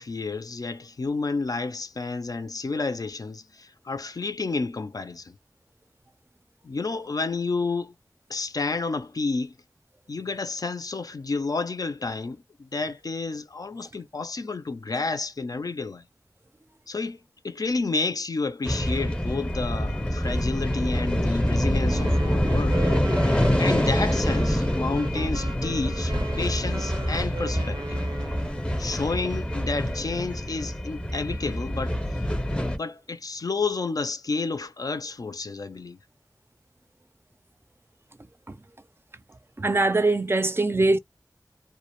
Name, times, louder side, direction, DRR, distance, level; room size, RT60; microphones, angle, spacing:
voice 1, 0.0-5.4 6.6-7.9 8.3-9.5 10.1-16.0 16.9-17.2 17.4-22.8 23.6-28.0 28.8-32.0 32.5-36.0, left 3 dB, 60° left, 0.4 m, -30 dB
sound 1, 18.6-32.8, equal, 15° left, 0.6 m, -26 dB
sound 2, 21.8-28.7, right 3 dB, 85° right, 0.5 m, -38 dB
voice 2, 39.6-41.0, right 2 dB, 35° right, 0.4 m, -22 dB
2.4 x 2.1 x 2.9 m
wide cardioid pair, 60°, 7 cm